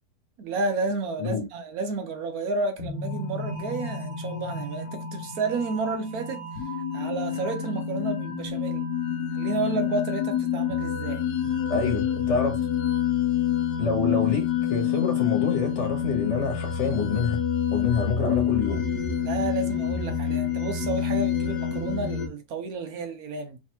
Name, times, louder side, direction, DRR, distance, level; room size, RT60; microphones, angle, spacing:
voice 1, 0.4-6.5 6.9-8.8 9.3-11.2 19.2-23.6, right 3 dB, 70° right, 1.2 m, -31 dB
sound 1, 2.8-22.3, left 8 dB, 85° left, 1.4 m, -28 dB
voice 2, 11.7-12.6 13.8-17.4 17.7-18.8, left 5 dB, 50° left, 1.4 m, -27 dB
3.5 x 3.2 x 2.8 m
omnidirectional pair, 1.7 m